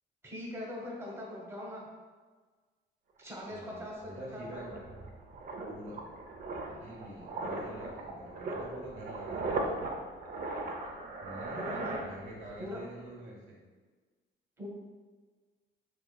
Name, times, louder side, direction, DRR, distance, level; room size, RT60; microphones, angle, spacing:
voice 1, 0.2-1.9 3.2-4.8 11.5-12.0 12.6-12.8 14.6-14.7, left 1 dB, 15° right, -4 dB, 1.0 m, -41 dB
sound 1, 3.2-3.3 3.6-12.7 12.9-13.2, right 2 dB, 45° right, 0.6 m, -38 dB
voice 2, 3.5-4.7 5.7-6.0 6.7-9.9 11.2-11.7 12.0-13.6, right 1 dB, 75° right, -5 dB, 1.1 m, -46 dB
3.6 x 3.2 x 2.3 m, 1.4 s
cardioid pair, 90°, 20 cm